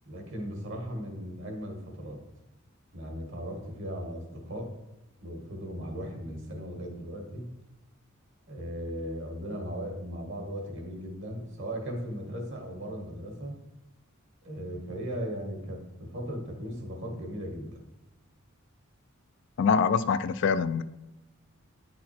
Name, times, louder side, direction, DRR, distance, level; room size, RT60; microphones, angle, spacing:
voice 1, 0.0-2.2 2.9-4.7 5.2-7.5 8.5-13.6 14.4-17.8, equal, 60° right, 2 dB, 1.6 m, -37 dB
voice 2, 19.6-20.8, left 6 dB, 55° left, 14 dB, 0.3 m, -24 dB
9.5 x 4.2 x 4.3 m, 1.0 s
head